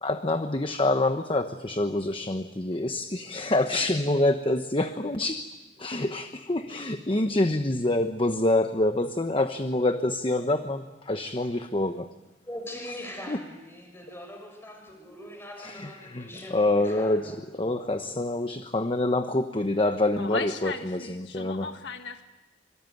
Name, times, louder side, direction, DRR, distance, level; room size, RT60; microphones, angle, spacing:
voice 1, 0.0-5.4 5.8-12.1 13.3-13.4 15.6-15.9 16.1-16.2 16.5-21.7, left 2 dB, 30° left, 8 dB, 1.0 m, -26 dB
voice 2, 12.5-17.3 17.7-18.1, left 1 dB, 15° left, 3 dB, 6.3 m, -42 dB
voice 3, 20.1-22.2, left 3 dB, 70° left, 6 dB, 1.5 m, -35 dB
26.0 x 24.0 x 9.4 m, 1.1 s
head